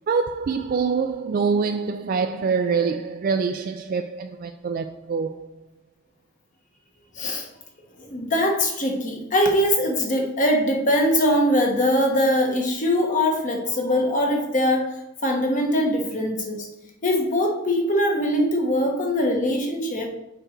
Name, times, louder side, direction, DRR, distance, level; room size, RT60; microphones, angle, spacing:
voice 1, 0.1-5.5, right 5 dB, 45° right, 0.3 m, -25 dB
voice 2, 8.0-14.9 15.2-16.7 17.0-20.1, left 1 dB, 40° left, 1.2 m, -22 dB
6.8 x 5.0 x 4.5 m
head